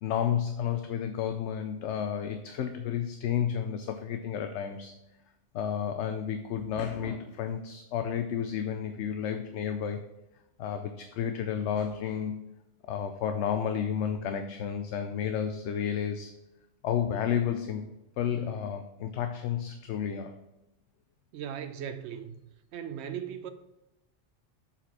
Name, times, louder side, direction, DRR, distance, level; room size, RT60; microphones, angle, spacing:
voice 1, 0.0-4.9 5.5-10.0 10.6-12.5 12.9-16.3 16.8-17.9 18.2-20.3, left 8 dB, 75° left, 0.8 m, -31 dB
voice 2, 21.3-22.4 22.7-23.5, right 8 dB, 70° right, 0.9 m, -38 dB
7.2 x 4.3 x 4.1 m
omnidirectional pair, 1.2 m